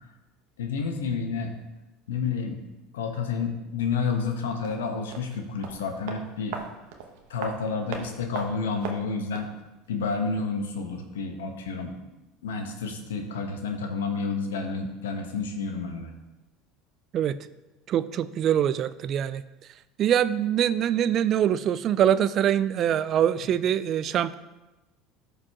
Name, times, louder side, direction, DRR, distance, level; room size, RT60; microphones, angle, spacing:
voice 1, 0.6-1.5 2.1-2.6 2.9-6.6 7.3-9.5 9.9-11.9 12.4-16.1, left 4 dB, 90° left, 5 dB, 1.0 m, -30 dB
sound 1, 4.6-9.6 9.8-9.9, right 5 dB, 75° right, 1.0 m, -40 dB
voice 2, 17.9-19.4 20.0-24.3, right 10 dB, 50° right, 15 dB, 0.4 m, -24 dB
13.5 x 5.1 x 2.9 m, 1.1 s
hypercardioid pair, 90°, 0 cm